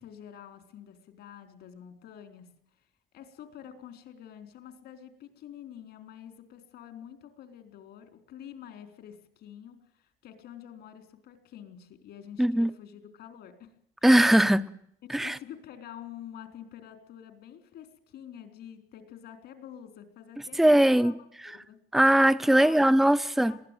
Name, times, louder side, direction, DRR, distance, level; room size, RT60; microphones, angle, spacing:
voice 1, 0.0-2.5 2.7-2.9 3.1-13.7 15.2-21.1 21.7-21.8 22.6-22.8 23.4-23.6, left 9 dB, 75° left, 4.2 m, -47 dB
voice 2, 12.4-12.7 14.0-14.6 15.1-15.4 20.6-21.1 21.9-23.6, right 1 dB, ahead, 0.8 m, -20 dB
22.5 x 16.0 x 9.2 m
cardioid pair, 110°, 17 cm